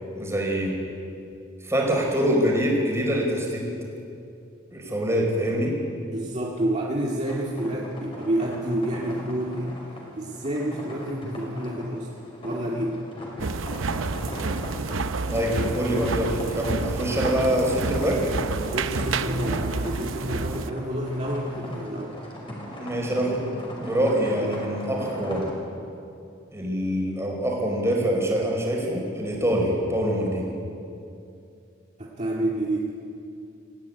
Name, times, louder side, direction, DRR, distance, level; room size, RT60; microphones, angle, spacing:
voice 1, 0.1-0.8 1.6-3.8 4.7-5.8 15.2-18.2 22.8-23.5 23.8-25.4 26.5-30.5, equal, 15° right, -1 dB, 4.8 m, -25 dB
voice 2, 6.0-9.8 10.2-12.1 12.4-13.0 18.7-22.2 32.0-32.9, right 1 dB, 35° right, -4 dB, 2.1 m, -29 dB
sound 1, 7.3-25.5, equal, 25° left, 5.1 m, -39 dB
sound 2, 13.4-20.7, right 4 dB, 80° right, 0.8 m, -29 dB
23.5 x 15.0 x 9.7 m, 2.6 s
head